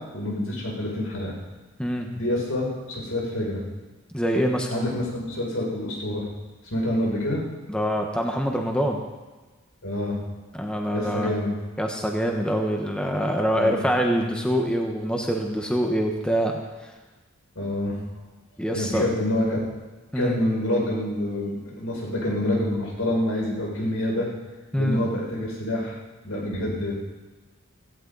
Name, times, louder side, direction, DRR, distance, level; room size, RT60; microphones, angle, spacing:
voice 1, 0.0-1.3 2.1-3.6 4.7-6.2 6.7-7.4 9.8-10.2 10.9-11.5 13.5-13.8 17.5-17.9 18.7-19.7 20.1-24.3 24.8-25.9 26.2-26.9, left 1 dB, 80° left, -3 dB, 6.5 m, -27 dB
voice 2, 4.1-4.7 7.7-9.0 10.5-11.3 11.8-16.6 18.6-19.1 20.1-20.4 24.7-25.1, equal, 5° left, 1 dB, 1.2 m, -25 dB
16.5 x 15.5 x 4.0 m, 1.2 s
head